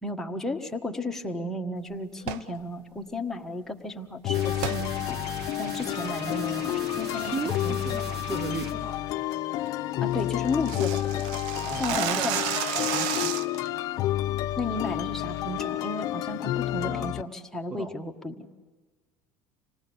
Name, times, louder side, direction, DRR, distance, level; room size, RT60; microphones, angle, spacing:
voice 1, 0.0-5.2 5.6-7.3 7.6-7.8 10.0-11.4 11.8-12.4 14.6-18.5, left 2 dB, 5° left, 1 dB, 1.6 m, -33 dB
sound 1, 2.2-2.5 4.6-4.8 5.3-5.4 5.9-6.2 6.6-6.9 7.2-7.5 7.9-8.0 8.4-8.6 9.0-9.1 9.4-9.5 9.7-9.8 10.0-13.7, right 9 dB, 70° right, 0.8 m, -31 dB
sound 2, 4.2-17.2, left 13 dB, 50° left, 0.6 m, -30 dB
sound 3, 4.3-8.7, right 2 dB, 55° right, 2.4 m, -40 dB
voice 2, 7.1-9.0 11.6-12.3 12.8-13.4 16.8-17.1 17.7-18.0, right 4 dB, 20° right, 8 dB, 0.8 m, -36 dB
27.0 x 19.0 x 7.1 m, 1.3 s
supercardioid pair, 125°, 8 cm